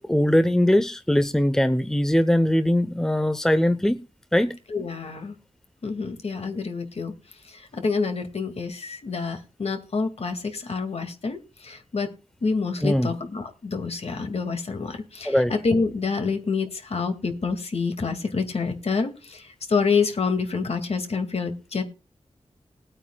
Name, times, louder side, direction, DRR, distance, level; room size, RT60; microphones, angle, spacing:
voice 1, 0.0-4.0 4.3-4.6 12.8-13.1 15.2-15.5, left 1 dB, 5° left, 11 dB, 0.8 m, -21 dB
voice 2, 4.7-5.4 5.8-7.1 7.5-12.1 12.4-21.8, left 4 dB, 60° left, 7 dB, 2.0 m, -27 dB
21.0 x 8.9 x 2.3 m, 0.31 s
wide cardioid pair, 120°, 12 cm